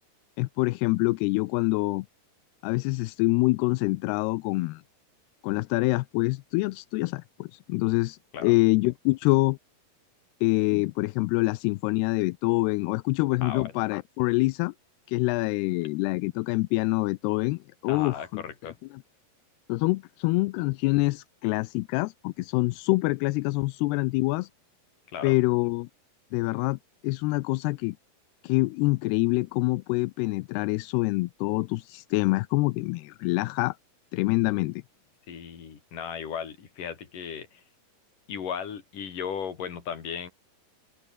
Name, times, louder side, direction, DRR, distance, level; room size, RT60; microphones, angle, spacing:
voice 1, 0.4-2.1 2.6-4.8 5.4-9.6 10.4-14.7 15.1-18.4 19.7-24.5 25.2-25.9 26.3-26.8 27.0-28.0 28.4-33.8 34.1-34.8, left 22 dB, 85° left, 2.6 m, -26 dB
voice 2, 13.4-13.7 15.7-15.8 17.9-18.8 25.1-25.3 35.3-37.6 38.3-40.3, left 7 dB, 55° left, 4.6 m, -36 dB
omnidirectional pair, 4.7 m